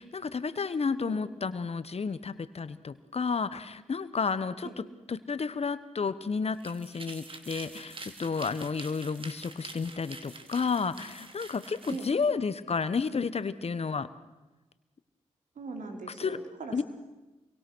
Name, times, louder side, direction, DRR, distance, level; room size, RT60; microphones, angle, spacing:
voice 1, 0.0-4.7 5.1-14.1 16.2-16.4 16.7-16.8, left 5 dB, 50° left, 14 dB, 1.3 m, -31 dB
sound 1, 6.5-12.1, right 2 dB, 45° right, 3.0 m, -46 dB
voice 2, 15.6-16.8, right 4 dB, 75° right, 3 dB, 3.9 m, -40 dB
27.5 x 23.0 x 6.3 m, 1.1 s
supercardioid pair, 40°, 13 cm